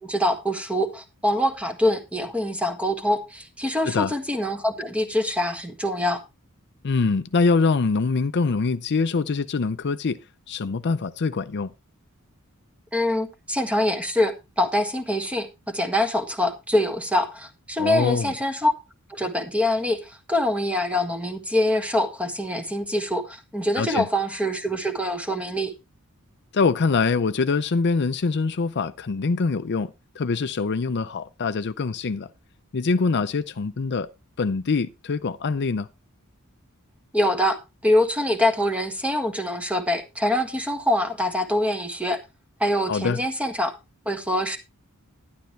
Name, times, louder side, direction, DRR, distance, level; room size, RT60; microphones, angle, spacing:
voice 1, 0.0-6.2 12.9-18.7 19.1-25.7 37.1-42.2 42.6-43.7 44.0-44.6, left 1 dB, 5° right, 1.6 m, -24 dB
voice 2, 6.8-10.2 10.5-11.7 17.8-18.3 23.8-24.1 26.5-29.9 30.2-32.3 32.7-34.1 34.4-35.9 42.9-43.2, left 4 dB, 50° left, 0.5 m, -24 dB
12.0 x 10.5 x 3.2 m
head